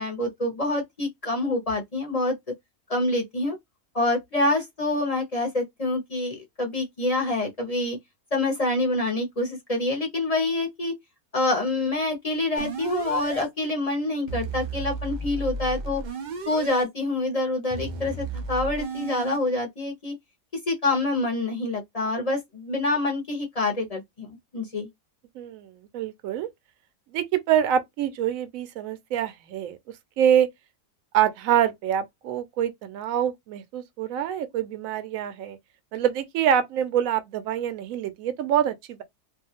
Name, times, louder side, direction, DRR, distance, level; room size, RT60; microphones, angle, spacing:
voice 1, 0.0-2.3 2.9-3.6 3.9-8.0 8.3-10.9 11.3-16.0 16.5-20.1 20.7-24.9, left 2 dB, 35° left, 0.6 m, -26 dB
sound 1, 12.6-13.4 14.3-16.8 17.7-19.4, right 3 dB, 90° right, 0.4 m, -33 dB
voice 2, 25.4-26.5 27.1-29.8 30.2-30.5 31.1-35.6 35.9-39.0, right 10 dB, 70° right, 0.9 m, -25 dB
2.6 x 2.3 x 2.8 m
omnidirectional pair, 1.7 m